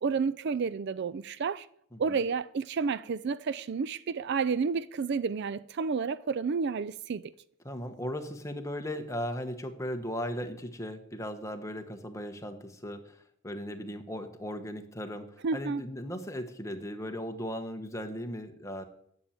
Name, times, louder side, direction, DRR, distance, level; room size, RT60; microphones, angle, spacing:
voice 1, 0.0-1.7 2.0-7.3 15.4-15.8, right 5 dB, 50° right, 0.4 m, -30 dB
voice 2, 7.6-18.8, equal, 15° left, 1.1 m, -37 dB
10.5 x 7.1 x 8.8 m
head